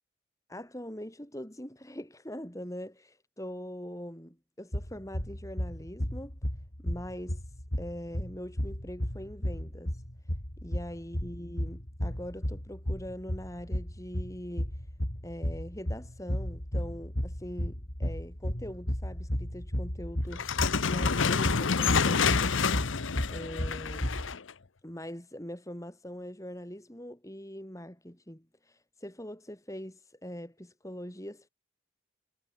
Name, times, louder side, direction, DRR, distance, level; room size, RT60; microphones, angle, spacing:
voice 1, 0.5-6.4 6.8-7.4 7.8-10.0 10.6-14.8 15.2-20.6 20.8-24.1 24.8-31.5, equal, 15° left, 3.8 m, -42 dB
sound 1, 4.7-24.3, equal, 45° left, 4.2 m, -34 dB
sound 2, 20.3-24.5, left 5 dB, 90° left, 0.9 m, -28 dB
head